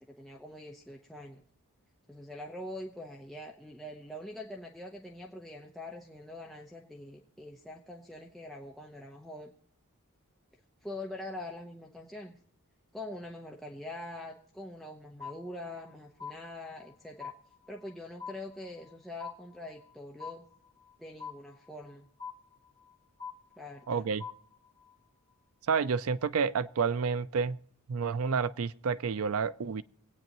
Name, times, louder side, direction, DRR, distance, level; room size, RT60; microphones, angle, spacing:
voice 1, 0.1-1.4 2.1-9.5 10.8-12.3 12.9-17.3 17.7-20.5 21.0-22.1 23.6-24.0, left 1 dB, ahead, 0.8 m, -44 dB
sound 1, 15.2-15.9 16.2-16.9 17.2-17.9 18.2-18.9 19.2-19.9 20.2-20.9 21.2-21.9 22.2-22.9 23.2-23.9 24.2-24.9, left 6 dB, 20° left, 1.4 m, -44 dB
voice 2, 23.9-24.2 25.7-27.6 27.9-29.8, right 5 dB, 70° right, 0.4 m, -29 dB
25.0 x 8.8 x 3.0 m
head